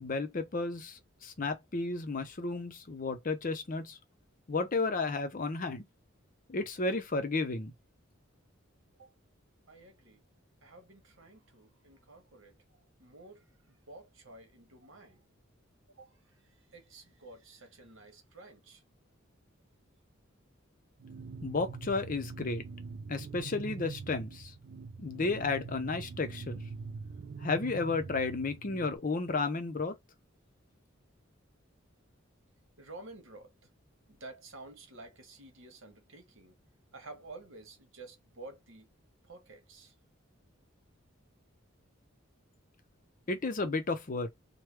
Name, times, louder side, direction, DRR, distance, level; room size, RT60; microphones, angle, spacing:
voice 1, 0.0-4.0 4.5-5.9 6.5-7.7 21.4-22.6 23.1-24.5 25.0-26.6 27.4-30.0 43.3-44.3, left 3 dB, 40° left, 0.6 m, -33 dB
voice 2, 9.7-10.2 10.6-12.6 13.0-15.2 15.9-16.2 16.7-18.8 32.8-33.5 34.1-36.6 36.9-38.9 39.2-39.9, right 2 dB, 70° right, 1.1 m, -51 dB
sound 1, 21.0-29.0, right 4 dB, 50° right, 0.3 m, -44 dB
3.2 x 2.1 x 3.2 m
head